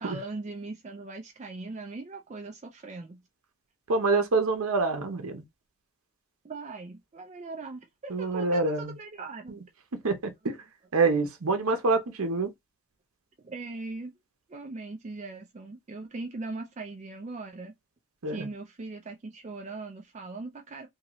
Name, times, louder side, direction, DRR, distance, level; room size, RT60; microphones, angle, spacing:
voice 1, 0.0-3.2 6.4-9.5 13.4-14.1 14.5-17.7 18.3-20.9, right 3 dB, 30° right, 0.4 m, -40 dB
voice 2, 3.9-5.4 8.1-8.9 10.0-10.6 10.9-12.5 18.2-18.5, right 3 dB, 70° right, 0.7 m, -26 dB
2.8 x 2.6 x 3.0 m
head